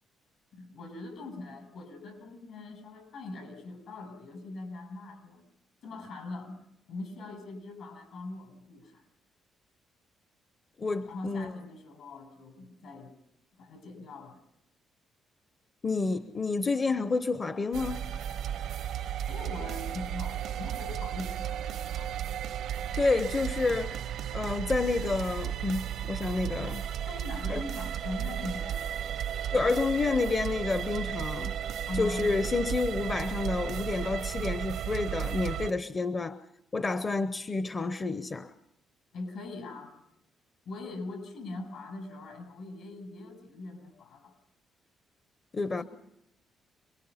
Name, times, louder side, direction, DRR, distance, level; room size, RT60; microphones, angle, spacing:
voice 1, 0.5-5.5 5.8-6.6 6.9-9.0 11.1-13.1 13.6-14.4 19.3-22.2 27.1-28.9 31.9-32.3 39.1-39.9 40.6-44.3 45.8-45.9, left 2 dB, 75° left, 7.9 m, -41 dB
voice 2, 10.8-11.5 15.8-18.0 23.0-24.0 24.3-26.9 27.5-27.6 29.5-31.6 32.0-36.5 36.7-38.5 45.5-45.8, left 3 dB, 35° left, 0.8 m, -29 dB
sound 1, 17.7-35.7, right 10 dB, 80° right, 0.9 m, -34 dB
28.0 x 21.5 x 5.7 m
cardioid pair, 90°, 0 cm